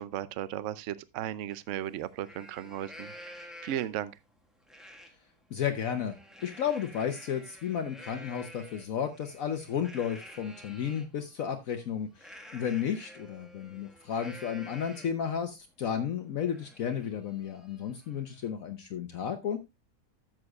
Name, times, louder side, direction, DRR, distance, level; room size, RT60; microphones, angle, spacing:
voice 1, 0.0-4.1, right 11 dB, 65° right, 0.8 m, -36 dB
Livestock farm animals working animals, 1.5-1.6 2.0-4.1 4.7-5.1 5.5-11.1 12.2-15.3 15.7-15.8 16.1-18.5, equal, ahead, 1.3 m, -50 dB
voice 2, 5.5-6.1 6.4-19.6, left 8 dB, 65° left, 1.2 m, -33 dB
12.5 x 7.5 x 2.4 m
omnidirectional pair, 1.7 m